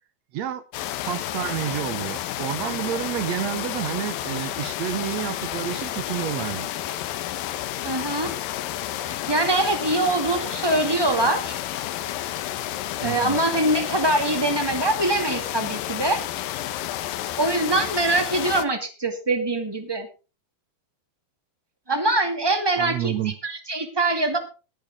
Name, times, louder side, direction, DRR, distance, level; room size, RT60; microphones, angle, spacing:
sound 1, 0.7-18.7, left 13 dB, 85° left, 2.6 m, -31 dB
voice 1, 1.0-6.7 13.0-13.5 22.8-23.4, right 11 dB, 70° right, 1.7 m, -29 dB
voice 2, 7.8-8.3 9.0-11.5 12.3-12.4 13.0-16.2 17.4-20.1 21.9-24.4, right 2 dB, 10° right, 1.4 m, -23 dB
19.0 x 10.5 x 3.6 m
omnidirectional pair, 4.0 m